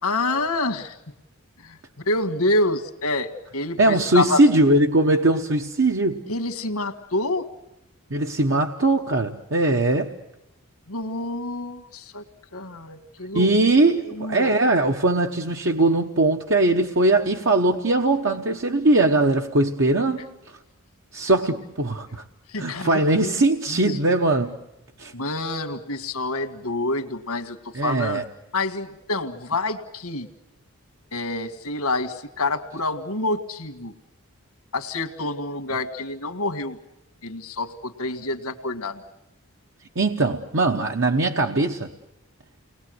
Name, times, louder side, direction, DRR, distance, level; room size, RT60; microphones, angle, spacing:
voice 1, 0.0-0.9 1.6-4.4 6.3-7.5 10.9-12.2 12.5-13.5 14.0-14.5 21.2-21.3 22.5-23.3 23.7-24.0 25.1-28.2 28.5-30.3 31.1-33.9 34.7-36.8 37.2-39.0, left 2 dB, 80° left, 1.8 m, -27 dB
voice 2, 3.8-6.2 8.1-10.1 13.3-20.3 21.1-22.2 22.6-24.5 25.0-25.1 27.7-28.2 40.0-41.9, right 2 dB, 60° right, 1.1 m, -20 dB
29.5 x 20.5 x 7.9 m
head